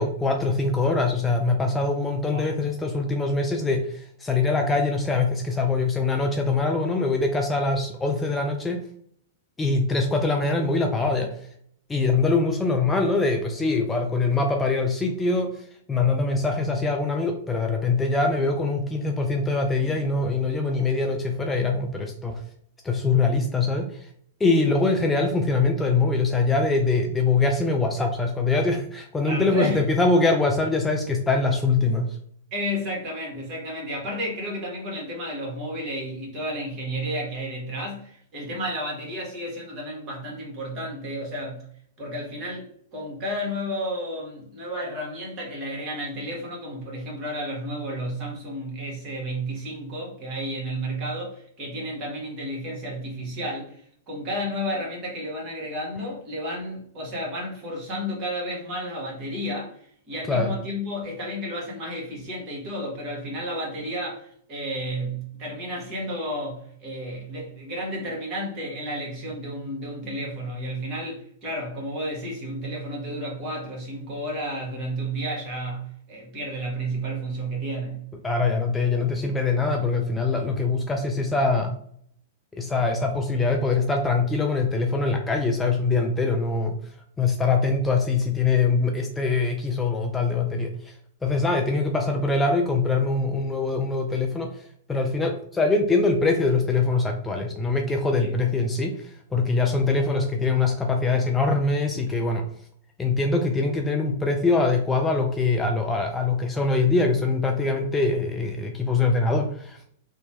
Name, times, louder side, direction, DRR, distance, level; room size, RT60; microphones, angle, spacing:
voice 1, 0.0-8.8 9.6-11.3 11.9-22.4 22.8-24.1 24.4-32.1 60.3-60.5 78.2-81.7 82.6-86.8 87.2-90.9 91.2-102.4 103.0-109.8, left 3 dB, 15° left, 2 dB, 0.4 m, -23 dB
voice 2, 29.2-29.8 32.5-41.6 42.0-53.8 54.1-78.1 98.2-98.3, equal, 35° right, -2 dB, 1.3 m, -32 dB
2.8 x 2.2 x 2.8 m, 0.62 s
figure-of-eight pair, 105°, 0 cm